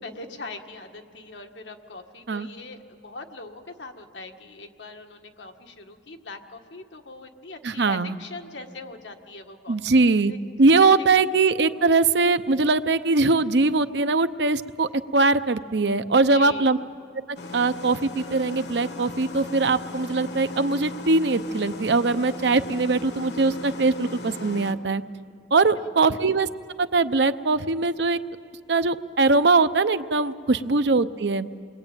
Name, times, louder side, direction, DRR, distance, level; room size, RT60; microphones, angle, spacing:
voice 1, 0.0-9.8 16.3-16.8 26.0-26.2, left 3 dB, 85° left, 4 dB, 1.7 m, -41 dB
voice 2, 7.6-8.2 9.7-10.3 10.6-16.8 17.5-25.0 25.5-26.5 26.8-28.2 28.7-31.5, right 3 dB, 75° right, 12 dB, 0.8 m, -21 dB
sound 1, 17.4-24.7, left 2 dB, 70° left, 1.4 m, -37 dB
29.0 x 22.0 x 9.0 m, 2.3 s
head